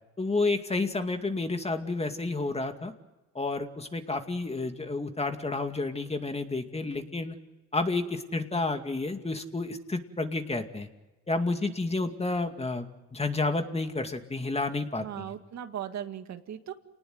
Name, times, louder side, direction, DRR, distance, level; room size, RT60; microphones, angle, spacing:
voice 1, 0.2-2.9 3.3-7.4 7.7-10.9 11.3-15.3, left 3 dB, 20° left, 6 dB, 2.3 m, -30 dB
voice 2, 15.0-16.7, right 10 dB, 65° right, 7 dB, 2.0 m, -38 dB
28.5 x 19.5 x 8.0 m, 1.1 s
cardioid pair, 90°, 30 cm